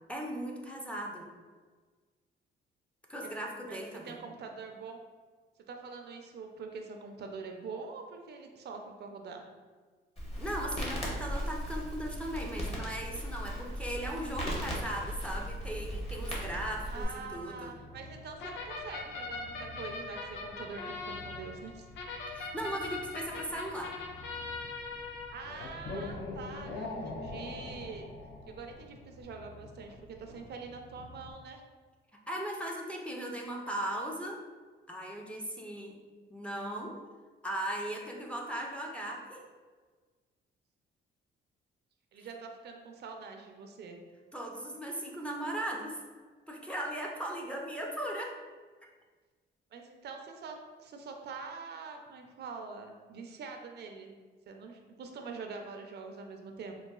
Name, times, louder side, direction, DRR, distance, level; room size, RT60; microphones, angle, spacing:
voice 1, 0.1-1.3 3.1-4.2 10.4-17.7 22.3-23.9 32.3-34.4 34.9-36.0 36.3-37.0 37.4-39.4 42.2-42.3 44.3-46.0 46.5-48.4, right 1 dB, 5° left, -1 dB, 0.4 m, -38 dB
voice 2, 3.7-5.0 5.7-9.5 16.7-21.9 25.3-28.1 28.5-31.6 42.1-44.0 49.7-54.1 54.5-56.7, right 4 dB, 55° right, 3 dB, 0.4 m, -44 dB
Crackle, 10.2-17.0, equal, 30° left, 0.9 m, -37 dB
Purr, 15.2-31.3, left 1 dB, 50° left, 1.2 m, -53 dB
sound 1, 18.4-28.7, left 3 dB, 70° left, 0.5 m, -41 dB
3.8 x 2.3 x 2.3 m, 1.4 s
cardioid pair, 90°, 20 cm